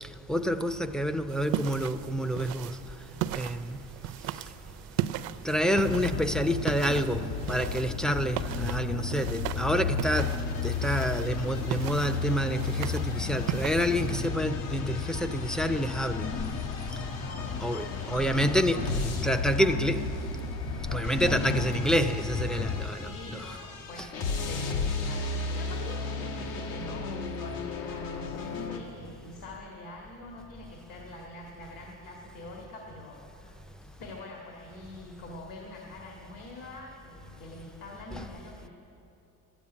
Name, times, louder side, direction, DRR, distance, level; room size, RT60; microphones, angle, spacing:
voice 1, 0.0-2.8 3.3-3.8 5.4-7.2 7.5-10.4 10.6-16.3 17.6-18.9 19.2-20.0 20.9-23.6 24.0-24.1 38.1-38.3, equal, ahead, 0.3 m, -28 dB
sound 1, 1.3-14.3, right 13 dB, 75° right, 0.5 m, -37 dB
sound 2, 5.7-22.8, left 5 dB, 45° left, 1.1 m, -33 dB
sound 3, 10.0-28.8, left 3 dB, 90° left, 1.5 m, -37 dB
voice 2, 17.1-19.8 23.0-38.7, left 2 dB, 70° left, 2.0 m, -45 dB
12.5 x 8.8 x 9.7 m
cardioid pair, 140°, 35 cm